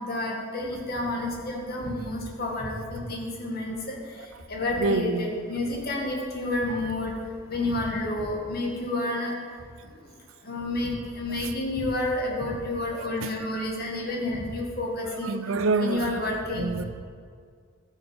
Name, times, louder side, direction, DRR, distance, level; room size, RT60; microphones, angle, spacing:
voice 1, 0.0-4.0 4.5-7.1 7.5-9.4 10.4-15.4 15.8-16.7, left 2 dB, 45° left, -1 dB, 1.9 m, -30 dB
voice 2, 4.8-5.3 13.5-13.6 15.2-16.2 16.5-16.8, right 3 dB, 75° right, 11 dB, 0.6 m, -26 dB
14.0 x 6.5 x 5.2 m, 2.1 s
head